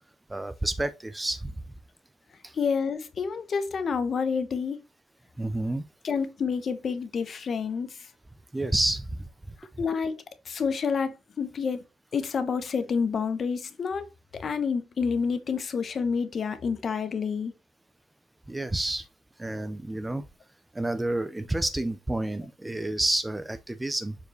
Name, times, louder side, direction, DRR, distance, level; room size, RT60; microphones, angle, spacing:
voice 1, 0.3-1.5 2.4-2.6 5.4-5.8 8.5-9.3 18.5-19.1 19.4-20.2 20.7-24.2, right 1 dB, 10° right, 0.4 m, -29 dB
voice 2, 2.5-4.8 6.0-8.1 9.8-11.8 12.1-14.1 14.3-17.5, left 5 dB, 35° left, 1.0 m, -29 dB
6.9 x 4.7 x 3.0 m
cardioid pair, 145°, 0 cm